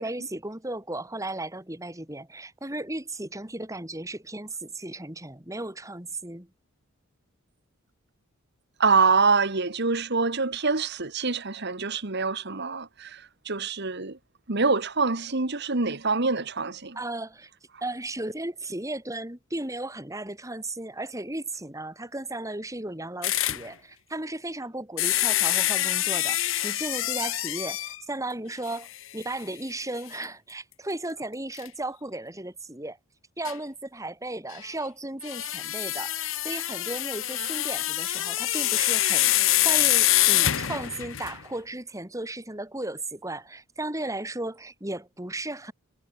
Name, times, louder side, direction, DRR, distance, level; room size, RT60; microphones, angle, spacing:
voice 1, 0.0-6.5 16.9-17.5 17.8-33.0 33.4-45.7, right 2 dB, 15° right, 3.1 m, -35 dB
voice 2, 8.8-13.2 13.5-14.2 14.5-17.0, right 4 dB, 50° right, 1.6 m, -25 dB
sound 1, 23.2-23.7 25.0-28.0 28.7-28.8 29.2-29.3 31.6-31.7 33.5-33.6 35.2-41.4, left 15 dB, 60° left, 0.9 m, -25 dB
head